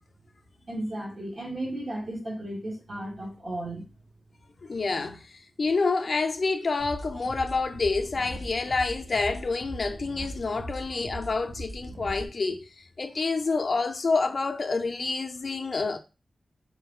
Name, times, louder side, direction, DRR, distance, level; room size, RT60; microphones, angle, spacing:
voice 1, 0.7-3.9, right 1 dB, 50° right, 1.4 m, -34 dB
voice 2, 4.6-16.0, left 3 dB, 50° left, 0.4 m, -28 dB
sound 1, 6.8-12.3, right 1 dB, 30° right, 1.3 m, -39 dB
4.5 x 2.6 x 3.6 m
wide cardioid pair, 105°, 0 cm